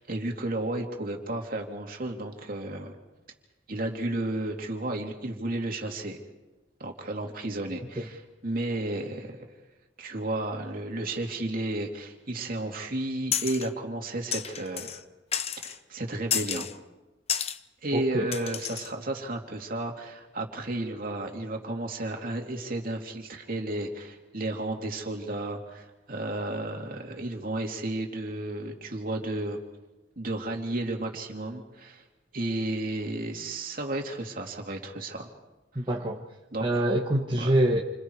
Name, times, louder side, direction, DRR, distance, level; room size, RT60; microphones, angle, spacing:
voice 1, 0.0-3.0 3.7-6.2 6.8-9.5 10.0-15.0 15.6-16.7 17.8-29.6 30.2-32.0 32.3-35.3 36.5-36.7 37.4-37.5, right 2 dB, 50° right, 2 dB, 3.0 m, -33 dB
sound 1, 13.3-13.7 14.3-15.0 15.3-15.8 16.3-16.7 17.3-17.6 18.3-18.9, left 8 dB, 35° left, 0.7 m, -31 dB
voice 2, 17.9-18.3 35.7-36.2 36.6-37.8, right 1 dB, 25° right, -1 dB, 1.4 m, -25 dB
28.5 x 27.0 x 4.9 m, 1.1 s
head